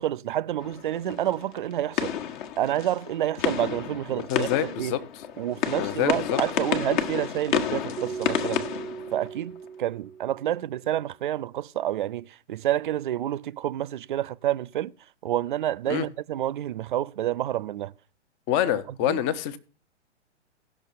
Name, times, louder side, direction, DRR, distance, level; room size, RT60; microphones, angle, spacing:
voice 1, 0.0-2.1 2.6-5.0 5.4-8.7 9.1-14.9 15.2-17.9 19.1-19.2, right 12 dB, 45° right, 0.4 m, -29 dB
sound 1, 0.6-9.7, left 9 dB, 40° left, 1.3 m, -31 dB
voice 2, 4.1-5.0 5.8-6.4 15.9-16.1 18.5-19.6, left 11 dB, 25° left, 0.8 m, -26 dB
Keyboard (musical), 8.0-10.8, right 7 dB, 85° right, 1.0 m, -38 dB
17.0 x 6.1 x 4.1 m
figure-of-eight pair, 110°, 36 cm